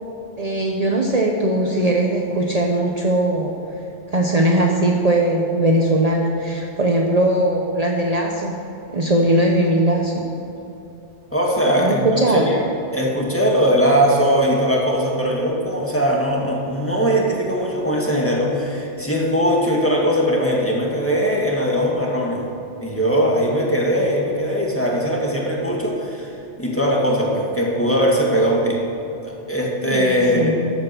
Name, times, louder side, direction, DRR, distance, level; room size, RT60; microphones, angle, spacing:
voice 1, 0.4-3.6 4.1-8.6 8.9-10.3 11.8-12.4 29.9-30.7, right 1 dB, 40° right, 0 dB, 1.0 m, -19 dB
voice 2, 11.3-12.7 12.9-22.4 22.8-28.9 29.2-30.6, equal, 10° left, -2 dB, 2.0 m, -20 dB
13.5 x 8.6 x 6.1 m, 3.0 s
omnidirectional pair, 1.1 m